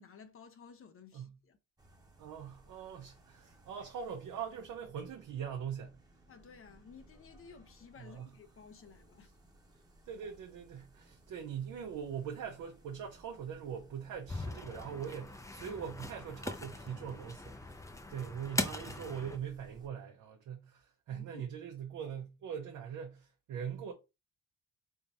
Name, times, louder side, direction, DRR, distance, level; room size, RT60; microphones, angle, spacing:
voice 1, 0.0-1.6 6.3-9.3 21.1-21.4, left 6 dB, 45° left, 0.7 m, -55 dB
sound 1, 1.8-19.9, right 2 dB, 10° right, 1.0 m, -61 dB
voice 2, 2.2-6.0 8.0-8.3 10.1-23.9, right 8 dB, 80° right, 1.0 m, -42 dB
sound 2, 14.3-19.4, left 2 dB, 10° left, 0.5 m, -40 dB
4.0 x 3.5 x 2.8 m
cardioid pair, 90°, 30 cm